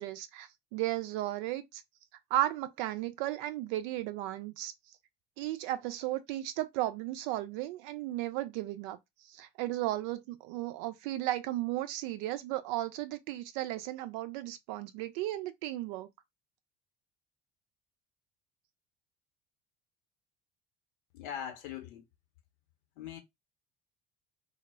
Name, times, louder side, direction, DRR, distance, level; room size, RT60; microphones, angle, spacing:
voice 1, 0.0-1.8 2.3-4.7 5.4-9.0 9.3-16.1, right 15 dB, 60° right, 0.5 m, -35 dB
voice 2, 21.1-22.0 23.0-23.2, left 9 dB, 65° left, 0.9 m, -41 dB
2.0 x 2.0 x 3.4 m
figure-of-eight pair, 60°, 30 cm